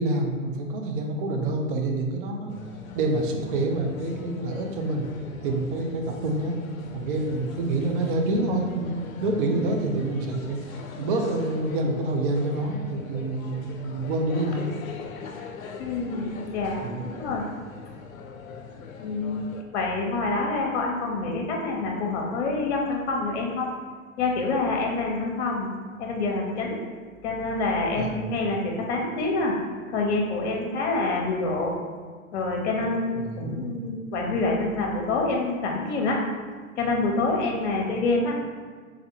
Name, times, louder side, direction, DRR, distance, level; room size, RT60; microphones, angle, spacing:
voice 1, 0.0-2.5 2.9-5.1 5.4-6.6 6.9-8.9 9.2-14.6 16.8-17.1 27.9-28.4 33.1-33.8, right 2 dB, 40° right, 2 dB, 0.6 m, -27 dB
sound 1, 2.5-19.6, left 5 dB, 75° left, 0.6 m, -41 dB
voice 2, 15.8-17.4 19.0-19.4 19.7-23.7 24.2-25.7 26.0-26.8 27.2-29.5 29.9-31.7 32.3-36.2 36.8-38.3, left 3 dB, 55° left, 0 dB, 0.9 m, -27 dB
3.5 x 3.4 x 2.8 m, 1.5 s
figure-of-eight pair, 105°, 41 cm